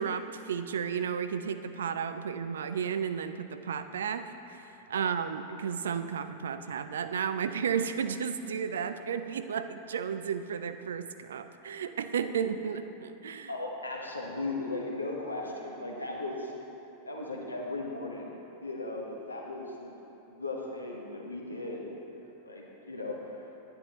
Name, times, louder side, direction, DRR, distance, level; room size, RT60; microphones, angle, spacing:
voice 1, 0.0-13.5, right 7 dB, 65° right, 10 dB, 0.4 m, -33 dB
voice 2, 13.5-16.5 17.0-18.3 18.6-19.9 20.3-21.9 22.4-23.5, left 2 dB, 85° left, -1 dB, 1.2 m, -37 dB
11.0 x 10.0 x 3.0 m, 2.9 s
figure-of-eight pair, 90°, 0 cm